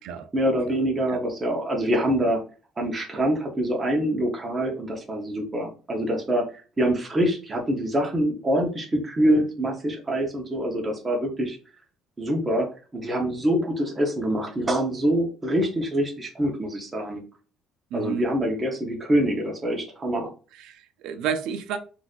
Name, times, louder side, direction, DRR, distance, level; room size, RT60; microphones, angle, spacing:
voice 1, 0.3-2.4 2.8-11.6 12.2-12.7 12.9-17.2 17.9-20.3, right 1 dB, 15° right, 0.8 m, -25 dB
voice 2, 17.9-18.2 20.6-21.8, right 7 dB, 75° right, 0.5 m, -30 dB
4.0 x 2.5 x 2.4 m
cardioid pair, 150°, 0 cm